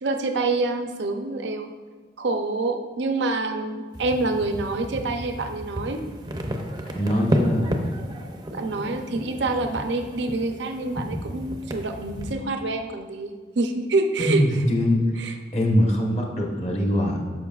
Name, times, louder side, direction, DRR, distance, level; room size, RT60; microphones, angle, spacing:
voice 1, 0.0-1.7 2.2-6.0 8.5-14.4 15.2-15.3, right 2 dB, 70° right, 5 dB, 0.6 m, -26 dB
sound 1, 3.9-12.3, equal, 20° right, 0.5 m, -32 dB
voice 2, 6.9-7.8 14.2-15.0 15.5-17.2, equal, 35° left, -1 dB, 1.1 m, -22 dB
13.0 x 5.2 x 2.4 m, 1.5 s
head